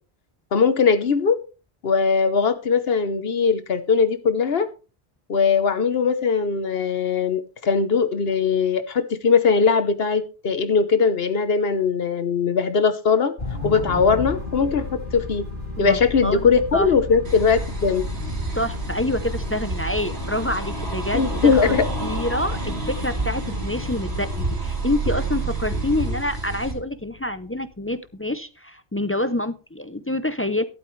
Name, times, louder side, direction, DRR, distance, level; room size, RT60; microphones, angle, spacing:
voice 1, 0.5-1.4 1.8-4.7 5.3-13.3 13.6-15.4 15.8-18.0 21.1-21.8, left 5 dB, 65° left, 11 dB, 1.1 m, -20 dB
sound 1, 13.4-27.9, left 2 dB, 50° left, 3.3 m, -34 dB
voice 2, 15.8-16.9 18.6-21.8 22.0-30.6, left 1 dB, 20° left, 12 dB, 0.4 m, -27 dB
sound 2, 17.2-26.7, right 3 dB, 75° right, 3.1 m, -29 dB
12.5 x 12.0 x 3.2 m, 0.34 s
omnidirectional pair, 1.1 m